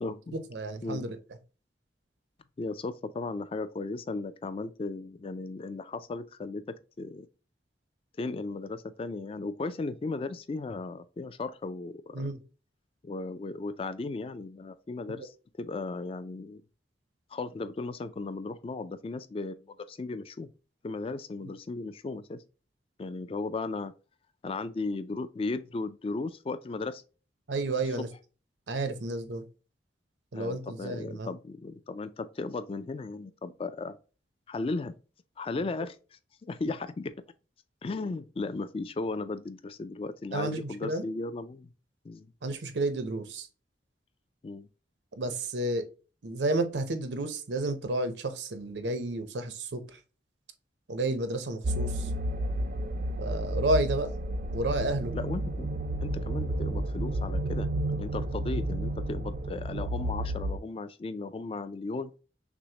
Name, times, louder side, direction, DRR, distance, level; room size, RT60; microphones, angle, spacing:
voice 1, 0.0-0.4 0.8-1.1 2.6-7.3 8.2-12.3 13.0-16.6 17.3-20.5 20.8-22.4 23.0-23.9 24.4-27.0 30.3-34.0 34.5-34.9 35.4-36.0 36.4-37.1 37.8-41.7 42.0-42.3 44.4-44.7 55.1-55.7 56.0-57.7 58.0-62.1, left 3 dB, 30° left, 0.3 m, -36 dB
voice 2, 0.5-1.2 12.1-12.4 21.4-21.5 27.5-28.1 28.7-29.4 30.3-31.3 35.6-35.7 40.3-41.0 42.4-43.5 45.2-45.9 46.2-50.0 50.9-52.1 53.2-54.1 54.5-55.1 58.5-58.6, right 2 dB, 85° right, 0.7 m, -31 dB
sound 1, 51.6-60.6, right 1 dB, 50° right, 0.4 m, -31 dB
6.0 x 2.1 x 2.8 m
head